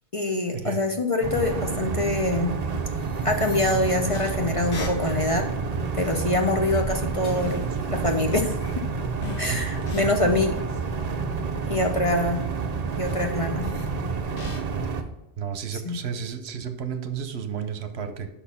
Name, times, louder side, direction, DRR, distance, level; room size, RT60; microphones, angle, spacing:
voice 1, 0.1-2.5 3.2-5.4 6.0-8.5 9.4-10.6 11.7-12.4 13.0-13.7 15.7-16.0, left 2 dB, 35° left, 4 dB, 0.7 m, -25 dB
sound 1, 1.2-15.0, right 4 dB, 45° right, 0.7 m, -29 dB
sound 2, 1.7-1.8 2.2-5.4 5.9-6.2 6.5-8.2 8.6-9.0 9.2-10.0 10.7-10.9 11.8-12.4 12.7-13.9 14.4-15.0, left 2 dB, 80° left, 1.6 m, -41 dB
voice 2, 15.4-18.3, right 7 dB, 70° right, 9 dB, 1.0 m, -32 dB
6.4 x 5.7 x 5.6 m, 0.97 s
omnidirectional pair, 1.1 m